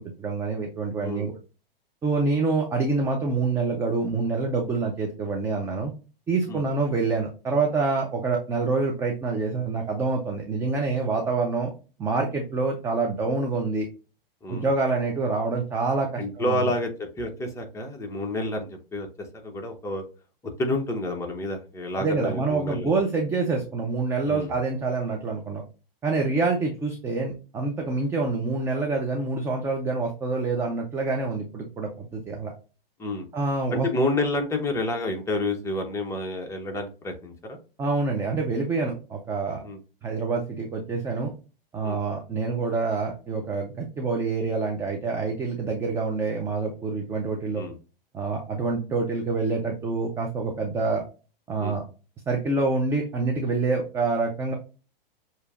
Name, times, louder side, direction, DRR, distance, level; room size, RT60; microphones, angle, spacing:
voice 1, 0.2-1.3 2.0-5.9 6.3-11.7 12.0-13.9 14.5-16.7 22.0-25.6 26.0-32.5 33.3-33.9 37.8-39.6 40.0-41.3 41.7-47.6 48.1-51.0 51.5-51.8 52.3-54.5, right 3 dB, 10° right, 1 dB, 0.4 m, -26 dB
voice 2, 16.2-20.0 20.6-23.0 24.3-24.5 33.0-33.3 33.7-37.6 39.6-39.8 41.8-42.0 47.6-47.8 51.6-51.8, left 2 dB, 10° left, 2 dB, 0.8 m, -29 dB
6.6 x 2.7 x 2.4 m, 0.34 s
hypercardioid pair, 125°, 29 cm